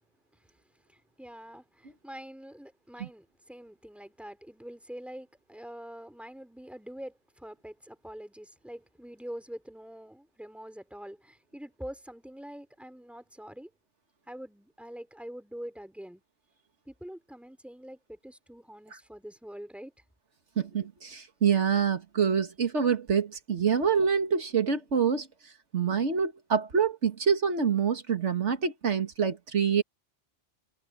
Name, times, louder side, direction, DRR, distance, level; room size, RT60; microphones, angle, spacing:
voice 1, 0.9-13.7 14.3-16.2 16.9-19.9, equal, ahead, 3.7 m, -45 dB
voice 2, 20.6-25.3 25.7-29.8, right 6 dB, 80° right, 2.0 m, -26 dB
omnidirectional pair, 1.2 m